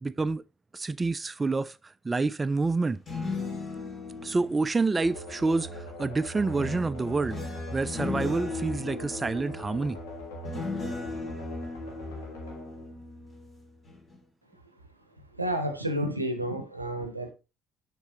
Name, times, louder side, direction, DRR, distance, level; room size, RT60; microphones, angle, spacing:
voice 1, 0.0-0.4 0.7-1.8 2.0-3.0 4.2-10.0, right 3 dB, 20° right, 0.3 m, -28 dB
sound 1, 2.9-5.8 6.5-13.5 13.8-14.2, left 3 dB, 35° left, 2.6 m, -38 dB
sound 2, 5.0-13.7, equal, 70° left, 1.6 m, -41 dB
voice 2, 15.4-17.3, equal, 90° right, 0.7 m, -30 dB
7.1 x 5.9 x 3.0 m
figure-of-eight pair, 50°, 0 cm